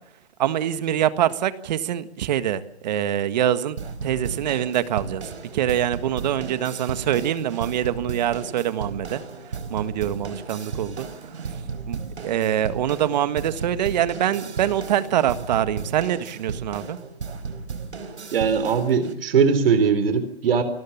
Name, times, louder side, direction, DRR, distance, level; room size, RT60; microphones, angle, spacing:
voice 1, 0.4-9.2 9.7-11.1 11.9-12.0 12.2-17.0, right 11 dB, 40° right, 12 dB, 1.6 m, -24 dB
Marching Mice, 3.8-19.1, right 5 dB, 90° right, 4.8 m, -35 dB
voice 2, 18.3-20.6, right 6 dB, 60° right, 10 dB, 3.9 m, -20 dB
28.5 x 20.0 x 7.2 m, 0.70 s
hypercardioid pair, 155°, 32 cm